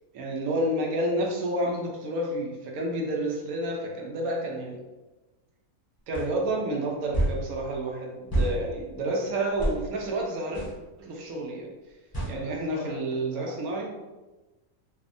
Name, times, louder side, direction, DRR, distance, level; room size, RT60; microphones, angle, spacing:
voice 1, 0.1-4.8 6.1-10.6 11.0-11.7 12.3-13.9, right 1 dB, 80° right, -1 dB, 1.1 m, -30 dB
sound 1, 6.1-6.3 7.1-7.4 8.3-8.5 9.6-9.8 10.5-10.7 12.1-12.4, right 1 dB, 35° left, 0.3 m, -26 dB
voice 2, 12.1-13.6, left 2 dB, 65° left, -3 dB, 0.9 m, -45 dB
3.3 x 2.0 x 2.5 m, 1.1 s
omnidirectional pair, 1.5 m